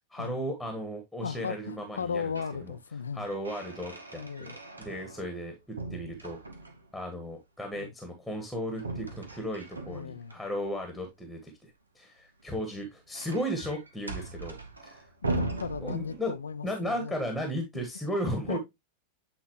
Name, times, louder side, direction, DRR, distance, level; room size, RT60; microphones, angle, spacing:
voice 1, 0.1-2.2 2.6-2.7 3.1-6.4 6.9-14.6 14.8-15.1 15.8-16.3 16.6-18.6, equal, ahead, 1.4 m, -35 dB
voice 2, 1.2-3.3 4.2-4.6 7.8-7.9 9.9-10.4 15.2-17.1 18.2-18.6, left 6 dB, 70° left, 0.5 m, -36 dB
sound 1, 2.0-2.6 3.0-5.4 5.8-7.0 8.8-10.4 12.4-16.6, right 2 dB, 80° right, 1.0 m, -39 dB
8.7 x 4.0 x 2.9 m
figure-of-eight pair, 90°, 0 cm